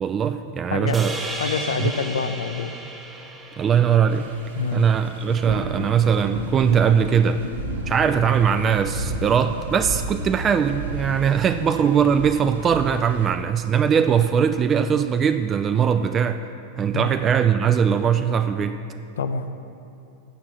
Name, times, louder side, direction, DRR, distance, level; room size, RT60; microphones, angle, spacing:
voice 1, 0.0-1.2 1.8-1.9 3.6-4.3 4.7-7.4 7.9-16.4 16.8-18.8, right 7 dB, 25° right, 9 dB, 0.3 m, -20 dB
sound 1, 0.9-5.3, right 2 dB, 5° right, 1.1 m, -34 dB
voice 2, 1.4-2.8 4.6-4.9 16.9-17.1 19.2-19.5, left 6 dB, 65° left, 10 dB, 0.5 m, -26 dB
sound 2, 4.1-13.3, right 2 dB, 65° right, 1.0 m, -33 dB
7.0 x 7.0 x 7.4 m, 2.6 s
figure-of-eight pair, 90°, 0 cm